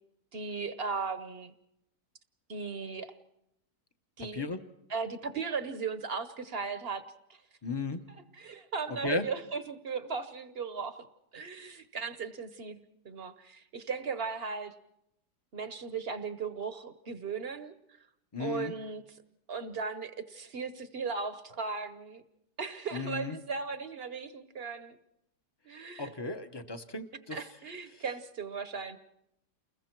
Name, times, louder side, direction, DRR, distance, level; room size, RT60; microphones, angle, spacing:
voice 1, 0.3-1.5 2.5-3.1 4.2-4.4 4.9-7.0 7.3-7.4 8.4-11.1 11.3-14.7 15.5-17.8 18.4-19.2 19.5-22.2 22.6-25.0 25.6-26.1 27.3-29.0, right 5 dB, 45° right, 11 dB, 0.9 m, -37 dB
voice 2, 7.6-8.0 9.0-9.3 18.3-18.7 22.9-23.4 26.0-27.4 27.9-28.0, left 3 dB, 25° left, 8 dB, 0.6 m, -35 dB
29.5 x 21.0 x 4.5 m, 0.83 s
omnidirectional pair, 1.8 m